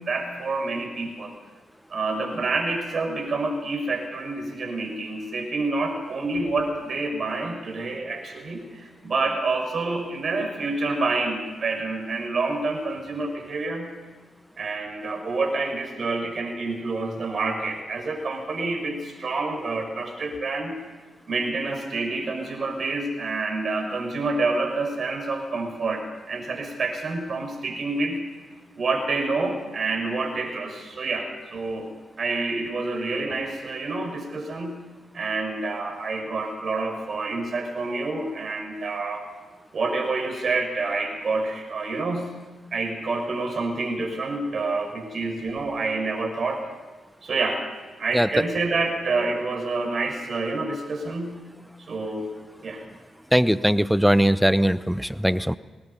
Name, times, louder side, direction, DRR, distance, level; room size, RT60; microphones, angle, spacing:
voice 1, 0.0-1.3 1.9-13.9 14.6-20.8 21.3-28.2 28.8-34.8 35.1-39.3 39.7-42.3 42.7-46.7 47.2-47.6 48.0-51.4 51.9-52.3 52.6-52.8, right 3 dB, 55° right, 4 dB, 5.7 m, -28 dB
voice 2, 53.3-55.6, equal, ahead, 16 dB, 0.8 m, -20 dB
24.5 x 20.0 x 5.5 m, 1.3 s
supercardioid pair, 50°, 0 cm